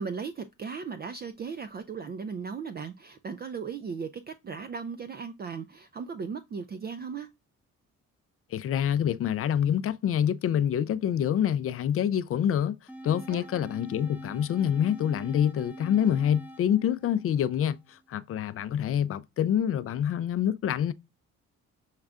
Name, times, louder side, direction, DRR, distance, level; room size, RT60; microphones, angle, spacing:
voice 1, 0.0-7.3 13.3-13.4, right 5 dB, 35° right, 0.4 m, -37 dB
voice 2, 8.5-12.8 13.0-20.9, left 9 dB, 50° left, 0.4 m, -26 dB
sound 1, 12.9-17.9, right 1 dB, 5° right, 0.8 m, -45 dB
6.4 x 2.3 x 3.6 m
cardioid pair, 90°, 30 cm